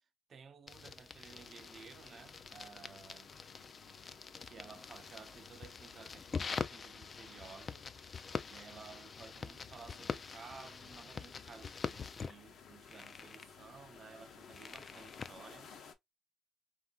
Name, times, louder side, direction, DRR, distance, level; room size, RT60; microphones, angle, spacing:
voice 1, 0.3-3.3 4.4-7.9 8.5-15.7, right 5 dB, 50° right, 0.5 m, -55 dB
sound 1, 0.7-15.3, left 5 dB, 40° left, 0.3 m, -45 dB
sound 2, 1.3-15.9, left 6 dB, 70° left, 0.7 m, -58 dB
3.4 x 2.5 x 2.2 m
cardioid pair, 90°, 0 cm